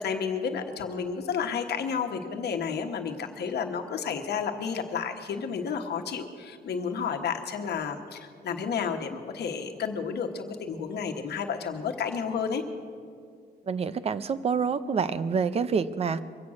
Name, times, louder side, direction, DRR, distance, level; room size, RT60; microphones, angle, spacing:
voice 1, 0.0-12.6, left 6 dB, 75° left, 4 dB, 1.2 m, -31 dB
voice 2, 13.7-16.2, right 6 dB, 35° right, 14 dB, 0.5 m, -27 dB
23.0 x 8.5 x 6.4 m, 2.2 s
wide cardioid pair, 170°, 17 cm